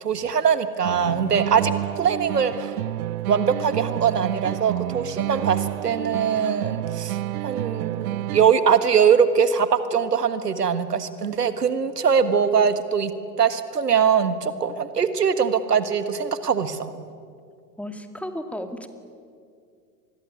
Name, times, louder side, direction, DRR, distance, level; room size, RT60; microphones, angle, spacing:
voice 1, 0.0-2.7 3.3-7.2 7.4-13.1 13.4-16.9, right 7 dB, 80° right, 12 dB, 1.6 m, -22 dB
sound 1, 0.8-8.8, right 15 dB, 65° right, 0.7 m, -29 dB
voice 2, 17.8-18.9, left 1 dB, 5° left, 7 dB, 2.3 m, -34 dB
26.0 x 21.5 x 9.6 m, 2.3 s
figure-of-eight pair, 90°, 47 cm